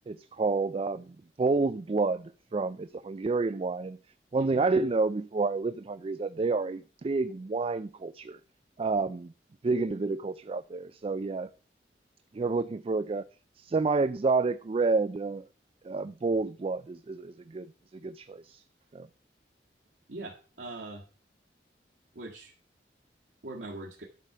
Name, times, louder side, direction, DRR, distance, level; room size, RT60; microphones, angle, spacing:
voice 1, 0.1-4.0 4.3-8.4 8.8-9.3 9.6-11.5 12.3-13.2 13.6-15.4 15.8-17.7 18.0-18.6 18.9-19.1, right 3 dB, 35° right, 0.4 m, -29 dB
voice 2, 20.1-21.0 22.1-22.5 23.4-24.0, right 2 dB, 90° right, 1.9 m, -41 dB
11.5 x 4.9 x 6.7 m
head